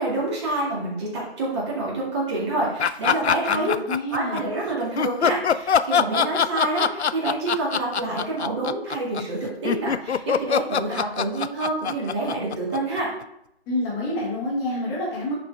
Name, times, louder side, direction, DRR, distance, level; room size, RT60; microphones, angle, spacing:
voice 1, 0.0-3.7 4.1-13.1, right 2 dB, 25° right, -5 dB, 2.1 m, -27 dB
sound 1, 2.8-4.4 5.0-13.2, left 7 dB, 80° left, 0.5 m, -23 dB
voice 2, 3.4-4.5 13.7-15.3, left 1 dB, 10° left, -5 dB, 1.4 m, -28 dB
9.8 x 4.1 x 3.4 m, 0.77 s
figure-of-eight pair, 145°, 33 cm